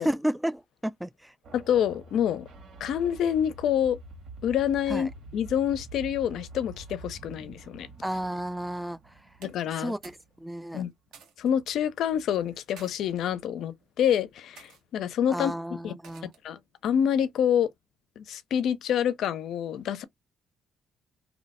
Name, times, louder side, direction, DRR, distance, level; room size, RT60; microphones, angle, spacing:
voice 1, 0.0-1.3 4.9-5.1 8.0-9.1 9.8-10.1 10.4-10.8 15.3-16.3, equal, 5° right, 0.3 m, -32 dB
sound 1, 1.4-10.5, right 3 dB, 70° right, 1.5 m, -47 dB
voice 2, 1.5-2.5 2.8-4.0 4.4-7.9 9.4-9.9 10.7-10.9 11.4-15.5 15.8-15.9 16.4-17.7 18.2-20.0, left 9 dB, 80° left, 0.5 m, -27 dB
sound 2, 9.4-10.3 10.6-11.5 12.4-12.9 13.7-14.0 14.5-14.8 16.0-16.5, right 6 dB, 90° right, 1.1 m, -52 dB
2.9 x 2.1 x 4.1 m
cardioid pair, 90°, 0 cm